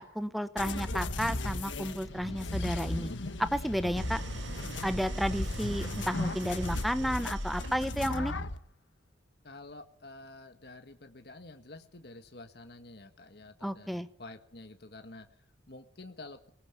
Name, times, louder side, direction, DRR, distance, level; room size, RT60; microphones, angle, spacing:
voice 1, 0.0-3.1 3.4-4.2 4.8-8.3 13.6-14.1, equal, ahead, 11 dB, 0.9 m, -32 dB
sound 1, 0.6-8.6, left 2 dB, 85° left, 1.6 m, -36 dB
Idling, 4.0-8.2, right 1 dB, 85° right, 2.3 m, -41 dB
voice 2, 9.4-16.5, left 2 dB, 60° left, 6 dB, 1.6 m, -49 dB
22.0 x 19.5 x 8.1 m, 0.62 s
head